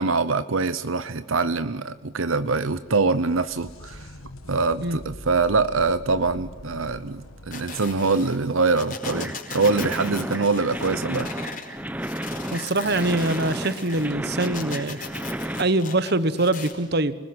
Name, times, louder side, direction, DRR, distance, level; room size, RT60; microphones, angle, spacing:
voice 1, 0.0-4.1 4.5-11.4 12.1-12.5, right 4 dB, 75° right, 13 dB, 0.9 m, -24 dB
sound 1, 2.0-9.6 13.0-13.1 14.1-14.2, left 1 dB, 90° left, 1.7 m, -44 dB
sound 2, 7.5-11.7 12.0-16.7, left 5 dB, 40° left, 4.7 m, -38 dB
sound 3, 9.0-15.6, right 1 dB, 5° right, 0.9 m, -32 dB
voice 2, 12.5-15.0 15.6-17.2, right 2 dB, 50° right, 14 dB, 1.3 m, -23 dB
29.5 x 20.5 x 9.7 m, 1.2 s
head